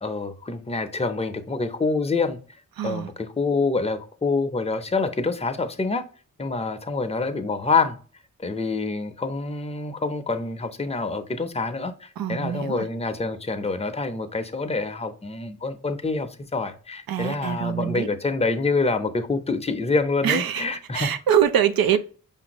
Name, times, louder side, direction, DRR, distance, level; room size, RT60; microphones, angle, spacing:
voice 1, 0.0-2.4 2.8-6.0 6.4-8.0 8.4-21.1, left 3 dB, 20° left, 0.6 m, -26 dB
voice 2, 2.8-3.1 12.2-12.9 17.1-18.1 20.2-20.7 20.9-22.0, right 9 dB, 85° right, 0.5 m, -23 dB
5.3 x 2.6 x 2.9 m
cardioid pair, 65°, 34 cm